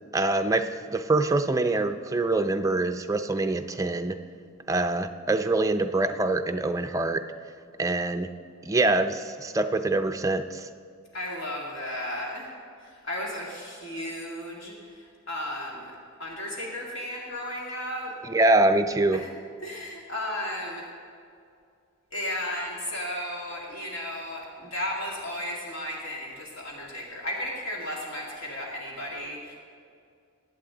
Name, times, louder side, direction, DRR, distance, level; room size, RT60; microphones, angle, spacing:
voice 1, 0.1-4.2 4.7-7.2 7.8-8.3 8.6-10.7 18.2-19.2, right 2 dB, 15° right, 7 dB, 0.4 m, -24 dB
voice 2, 11.1-12.5 12.8-15.9 16.2-18.1 19.1-19.3 19.6-20.9 22.1-29.5, left 1 dB, 60° left, -3 dB, 2.1 m, -34 dB
21.0 x 8.4 x 3.8 m, 2.3 s
head